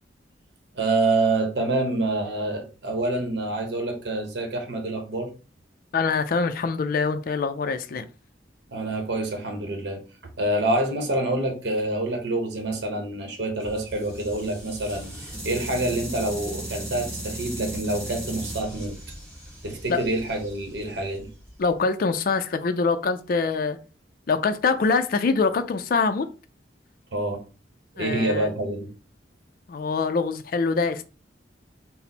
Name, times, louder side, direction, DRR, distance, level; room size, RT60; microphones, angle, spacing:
voice 1, 0.8-5.3 8.7-10.0 10.4-19.0 19.6-21.3 27.1-27.4 28.0-28.9, right 2 dB, 70° right, 0.8 m, -27 dB
voice 2, 5.9-8.0 19.9-20.0 21.6-23.8 24.3-26.3 28.0-28.5 29.7-31.0, left 4 dB, 50° left, 0.4 m, -24 dB
sound 1, 13.6-21.7, right 1 dB, 15° right, 1.6 m, -37 dB
4.2 x 2.0 x 4.0 m
head